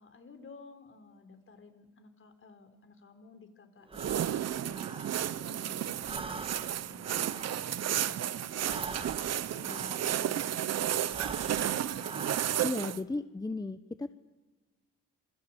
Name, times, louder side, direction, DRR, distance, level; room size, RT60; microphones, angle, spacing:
voice 1, 0.0-7.4 7.8-8.7 9.5-12.2, left 4 dB, 45° left, 8 dB, 4.1 m, -53 dB
Breathing, 3.9-5.6 5.9-10.5 11.0-12.9, right 3 dB, 20° right, 1.7 m, -44 dB
sound 1, 3.9-13.0, right 11 dB, 55° right, 0.9 m, -32 dB
voice 2, 12.6-14.1, left 2 dB, 15° left, 11 dB, 0.9 m, -35 dB
27.0 x 21.0 x 8.6 m, 1.3 s
cardioid pair, 90°, 30 cm